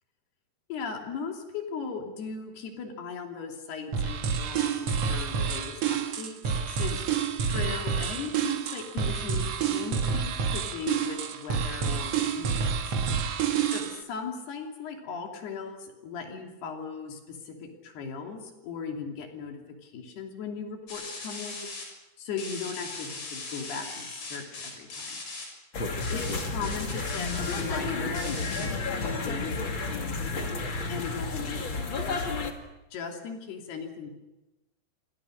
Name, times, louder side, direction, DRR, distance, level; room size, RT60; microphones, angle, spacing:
voice 1, 0.7-7.0 7.4-13.0 13.7-21.7 22.2-25.2 26.1-29.5 29.8-30.5 30.9-32.3 32.9-34.1, left 5 dB, 90° left, 2 dB, 4.9 m, -38 dB
sound 1, 3.9-14.0, right 6 dB, 55° right, 2.0 m, -28 dB
sound 2, 20.9-21.8 22.4-25.4 26.0-27.6 28.1-28.7, left 3 dB, 65° left, 7.9 m, -39 dB
sound 3, 25.7-32.5, left 3 dB, 35° left, 2.7 m, -31 dB
29.0 x 24.5 x 6.5 m, 1.0 s
omnidirectional pair, 4.5 m